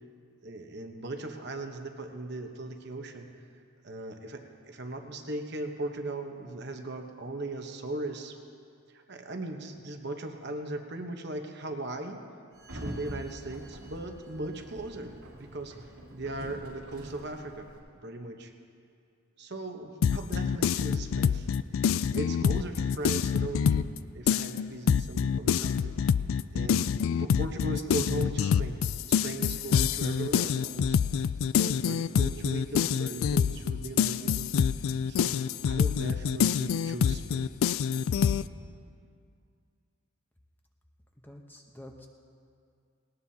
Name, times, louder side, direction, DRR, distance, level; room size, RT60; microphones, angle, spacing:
voice 1, 0.4-3.3 3.8-8.4 8.9-12.2 12.7-15.7 16.1-17.7 18.0-18.5 19.4-21.5 21.9-26.0 26.5-26.9 27.2-28.8 29.1-31.3 31.5-37.5, right 2 dB, 50° right, 4 dB, 1.0 m, -38 dB
Sliding door, 12.5-17.8, equal, 90° right, 2.4 m, -44 dB
sound 1, 20.0-24.0 24.3-38.4, left 7 dB, 70° left, 0.3 m, -26 dB
voice 2, 41.2-42.1, left 1 dB, 10° left, 2 dB, 0.8 m, -48 dB
19.0 x 18.5 x 2.8 m, 2.3 s
head